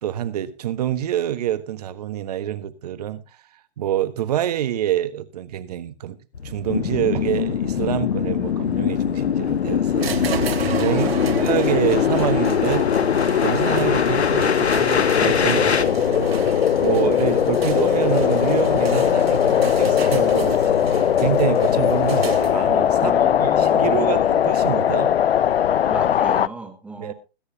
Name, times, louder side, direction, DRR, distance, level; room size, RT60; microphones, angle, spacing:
voice 1, 0.0-3.2 3.8-6.2 6.4-11.1 11.4-12.8 13.4-16.5 16.8-25.2 27.0-27.1, right 11 dB, 40° right, 1.4 m, -26 dB
sound 1, 6.3-15.9, left 6 dB, 90° left, 1.5 m, -27 dB
sound 2, 6.7-26.5, left 10 dB, 70° left, 0.6 m, -20 dB
sound 3, 10.0-22.8, right 3 dB, 70° right, 3.1 m, -30 dB
voice 2, 10.9-11.5 23.0-24.2 25.9-27.1, right 3 dB, 5° right, 1.4 m, -37 dB
21.5 x 9.7 x 2.8 m
hypercardioid pair, 150°, 32 cm